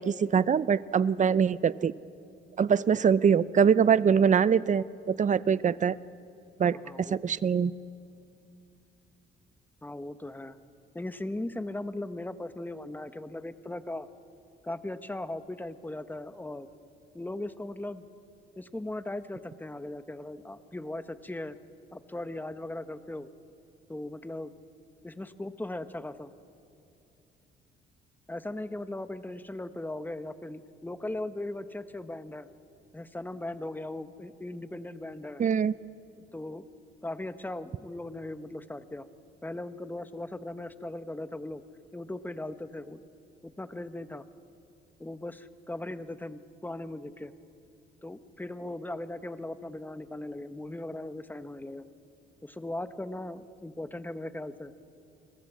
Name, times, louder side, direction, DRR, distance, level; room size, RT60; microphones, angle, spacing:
voice 1, 0.0-1.9 2.6-6.0 6.6-7.7 35.4-35.7, right 7 dB, 40° right, 18 dB, 0.7 m, -23 dB
voice 2, 6.6-7.2 9.8-10.6 10.9-14.1 14.6-16.7 17.1-18.1 18.6-21.6 21.9-23.3 23.9-24.5 25.0-26.3 28.3-32.5 32.9-35.4 36.3-36.6 37.0-39.1 39.4-41.6 41.9-43.0 43.4-44.2 45.0-47.3 48.0-51.8 52.4-54.7, left 1 dB, 10° left, 11 dB, 1.2 m, -38 dB
29.5 x 21.0 x 7.5 m, 2.6 s
cardioid pair, 90°, 20 cm